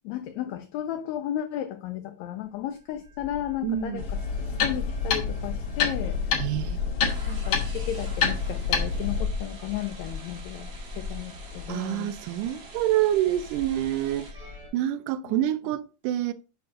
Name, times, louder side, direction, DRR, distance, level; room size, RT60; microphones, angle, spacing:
voice 1, 0.0-4.2 4.6-6.2 7.3-12.1 15.3-15.4, left 11 dB, 85° left, 1.6 m, -34 dB
sound 1, 2.5-14.7, left 4 dB, 15° right, 2.9 m, -40 dB
voice 2, 3.6-4.0 6.4-6.8 11.7-14.3 14.7-16.3, right 12 dB, 85° right, 2.1 m, -27 dB
sound 2, 4.0-9.2, left 5 dB, 55° left, 1.8 m, -27 dB
sound 3, 7.0-14.3, right 3 dB, 60° right, 3.0 m, -47 dB
10.5 x 5.6 x 2.5 m
omnidirectional pair, 3.8 m